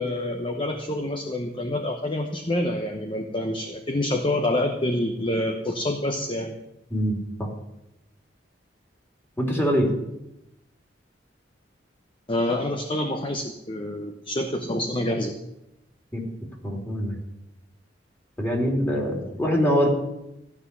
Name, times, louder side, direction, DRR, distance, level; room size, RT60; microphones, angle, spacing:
voice 1, 0.0-6.6 12.3-15.4, left 1 dB, 30° left, 4 dB, 1.0 m, -27 dB
voice 2, 6.9-7.5 9.4-9.9 16.1-16.2 16.6-17.2 18.4-19.9, equal, 15° left, -1 dB, 3.3 m, -24 dB
15.0 x 6.1 x 9.8 m, 0.88 s
head